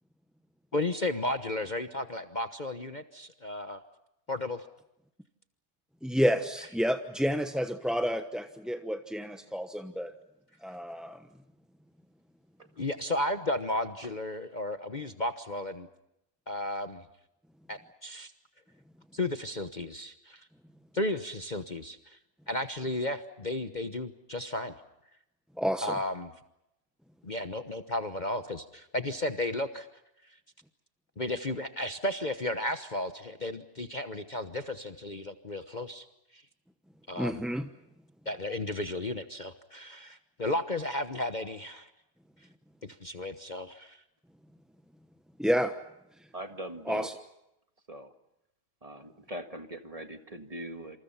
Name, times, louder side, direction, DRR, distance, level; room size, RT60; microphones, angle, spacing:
voice 1, 0.7-3.8 4.3-4.7 12.8-15.9 16.5-17.0 17.7-18.3 19.1-20.5 20.9-22.2 22.5-24.7 25.8-26.3 27.2-29.9 31.2-36.0 36.3-36.4 37.1-37.3 38.3-41.9 42.8-44.0, left 1 dB, 30° left, 7 dB, 1.1 m, -34 dB
voice 2, 6.0-10.1 10.6-11.2 25.6-26.0 37.2-37.7 45.4-45.7 46.9-47.1, equal, ahead, 7 dB, 0.8 m, -30 dB
voice 3, 46.3-47.1 47.9-48.1 48.8-51.0, right 1 dB, 25° right, 7 dB, 1.8 m, -41 dB
28.0 x 27.5 x 5.7 m, 0.85 s
omnidirectional pair, 1.7 m